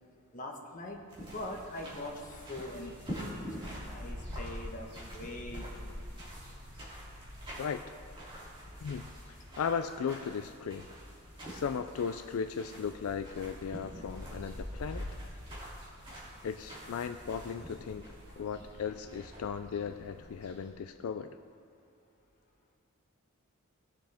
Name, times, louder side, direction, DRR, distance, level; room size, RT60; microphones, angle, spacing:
voice 1, 0.3-6.1 9.5-9.6, left 1 dB, 40° left, 0 dB, 1.3 m, -43 dB
sound 1, 1.1-20.7, equal, 25° right, 2.9 m, -45 dB
voice 2, 8.8-10.9 11.5-15.1 16.4-18.0 18.4-21.4, left 6 dB, 75° left, 9 dB, 0.4 m, -36 dB
18.5 x 7.5 x 3.5 m, 2.6 s
head